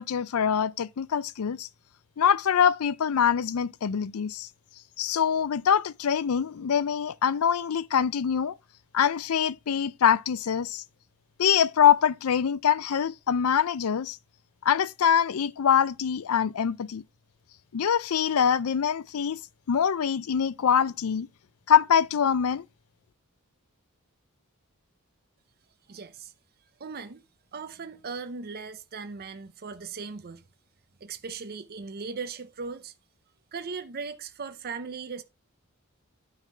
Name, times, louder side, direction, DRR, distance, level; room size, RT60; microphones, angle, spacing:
voice 1, 0.0-1.7 2.2-4.5 5.0-8.5 8.9-10.8 11.4-14.2 14.6-17.0 17.7-19.4 19.7-21.3 21.7-22.6, left 8 dB, 75° left, 0.4 m, -24 dB
voice 2, 25.9-26.3 26.8-27.2 27.5-30.4 31.0-32.9 33.5-35.2, right 5 dB, 45° right, 0.6 m, -38 dB
9.2 x 3.6 x 5.5 m
head